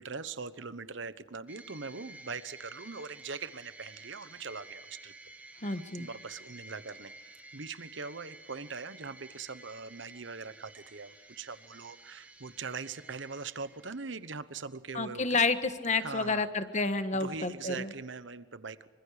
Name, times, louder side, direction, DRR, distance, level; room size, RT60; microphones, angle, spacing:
voice 1, 0.0-5.1 5.6-7.1 7.5-15.5 16.0-16.5 17.1-18.9, right 4 dB, 65° right, 14 dB, 1.0 m, -41 dB
sound 1, 1.5-14.3, right 2 dB, 5° right, 1.5 m, -52 dB
voice 2, 5.6-6.1 14.9-17.9, left 3 dB, 35° left, 9 dB, 1.4 m, -30 dB
25.5 x 25.0 x 5.0 m, 1.4 s
head